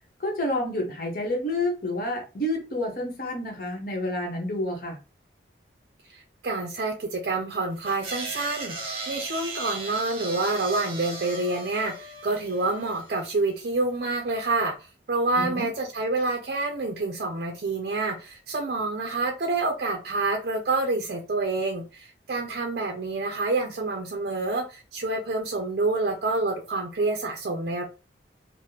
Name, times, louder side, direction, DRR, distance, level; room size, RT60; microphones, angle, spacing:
voice 1, 0.2-5.0 15.4-15.7, left 1 dB, 50° left, 1.0 m, -29 dB
voice 2, 6.1-27.8, right 3 dB, 55° right, 0.5 m, -28 dB
sound 1, 7.9-13.2, right 3 dB, 30° right, 0.8 m, -37 dB
3.2 x 2.1 x 2.8 m
head